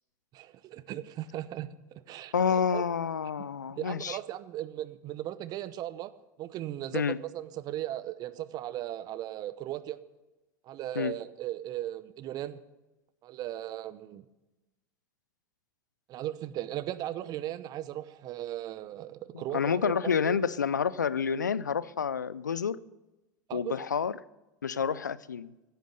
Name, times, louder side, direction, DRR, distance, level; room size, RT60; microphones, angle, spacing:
voice 1, 0.3-2.8 3.7-6.1 6.4-10.0 10.7-12.6 13.2-14.2 16.1-20.4 23.5-23.8, right 13 dB, 45° right, 0.8 m, -37 dB
voice 2, 2.3-4.2 6.9-7.2 11.0-11.2 19.3-22.8 23.5-24.2 24.6-25.5, left 6 dB, 85° left, 0.4 m, -29 dB
16.5 x 9.2 x 6.7 m
figure-of-eight pair, 80°, 9 cm